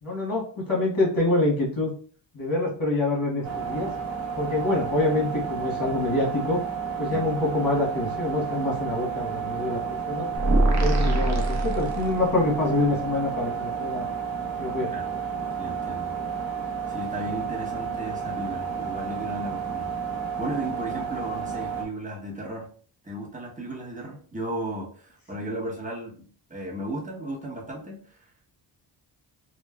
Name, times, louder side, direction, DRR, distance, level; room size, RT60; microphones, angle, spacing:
voice 1, 0.0-1.9 2.3-3.9 4.4-6.6 7.0-10.3 10.7-14.0 14.6-14.9, left 2 dB, 45° left, -2 dB, 1.3 m, -26 dB
sound 1, 3.4-21.9, right 6 dB, 75° right, 0.7 m, -31 dB
sound 2, 10.3-12.5, right 2 dB, 40° right, 0.6 m, -23 dB
voice 2, 15.6-16.1 16.9-19.9 20.4-22.7 23.0-28.3, right 1 dB, 15° right, -3 dB, 0.9 m, -35 dB
3.0 x 2.1 x 2.3 m, 0.43 s
cardioid pair, 75°, 46 cm